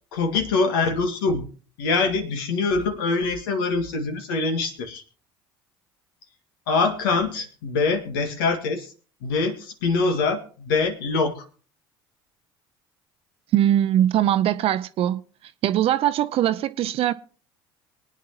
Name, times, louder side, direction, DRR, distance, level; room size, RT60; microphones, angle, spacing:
voice 1, 0.1-1.5 1.8-5.0 6.7-8.9 9.2-11.5, left 4 dB, 75° left, 1.8 m, -24 dB
voice 2, 13.5-15.2 15.6-17.1, right 11 dB, 50° right, 0.6 m, -21 dB
23.0 x 9.4 x 2.9 m
hypercardioid pair, 65°, 12 cm